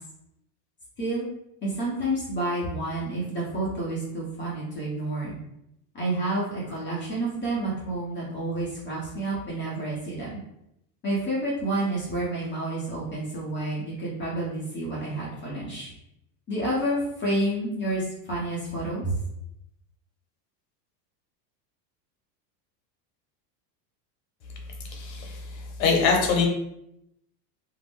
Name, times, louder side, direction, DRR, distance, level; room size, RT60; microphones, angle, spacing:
voice 1, 1.0-1.3 1.6-5.3 5.9-10.4 11.0-15.9 16.5-19.1, right 1 dB, 25° left, -6 dB, 0.7 m, -29 dB
voice 2, 24.9-26.5, left 5 dB, 75° left, 1 dB, 1.0 m, -24 dB
2.5 x 2.0 x 3.5 m, 0.81 s
supercardioid pair, 130°, 50 cm